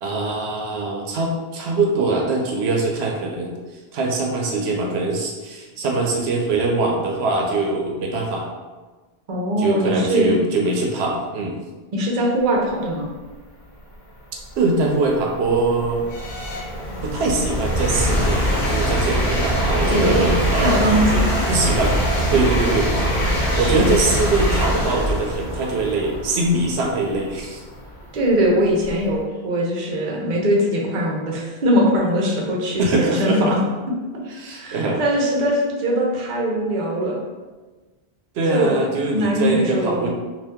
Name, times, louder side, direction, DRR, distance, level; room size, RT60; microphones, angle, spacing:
voice 1, 0.0-3.6 3.9-8.4 9.6-11.6 14.6-16.0 17.0-20.9 21.5-21.9 22.3-23.2 23.6-27.6 32.8-33.5 34.4-35.0 38.3-40.1, right 2 dB, 85° right, 0 dB, 0.8 m, -22 dB
voice 2, 9.3-10.3 11.9-13.1 19.9-20.3 20.6-21.3 23.5-24.0 28.1-33.6 34.5-37.2 38.5-38.8 39.0-40.1, equal, 50° right, -2 dB, 0.7 m, -21 dB
sound 1, 13.7-13.8 14.4-29.2, equal, 60° left, 1.0 m, -23 dB
2.7 x 2.4 x 3.5 m, 1.3 s
omnidirectional pair, 1.1 m